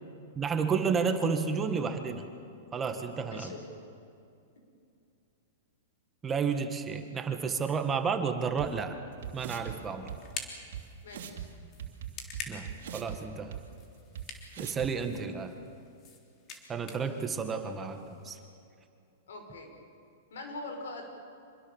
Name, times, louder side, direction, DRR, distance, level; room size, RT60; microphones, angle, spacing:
voice 1, 0.4-2.3 2.7-3.6 6.2-9.0 9.3-10.1 12.5-13.6 14.6-15.6 16.7-18.4, right 5 dB, 20° right, 6 dB, 1.8 m, -31 dB
voice 2, 3.3-3.6 9.9-10.0 11.0-11.4 14.5-14.6 19.3-19.7 20.3-21.0, left 2 dB, 80° left, 4 dB, 5.5 m, -42 dB
sound 1, 8.6-8.7 9.2-9.7 10.1-10.2 10.7-10.8 11.1-11.4 11.8-13.2 13.5-13.6 14.1-14.2 14.5-14.9, right 9 dB, 75° right, 2.9 m, -39 dB
sound 2, 9.2-18.4, left 5 dB, 35° left, 3.4 m, -48 dB
26.0 x 21.5 x 7.3 m, 2.5 s
hypercardioid pair, 135°, 0 cm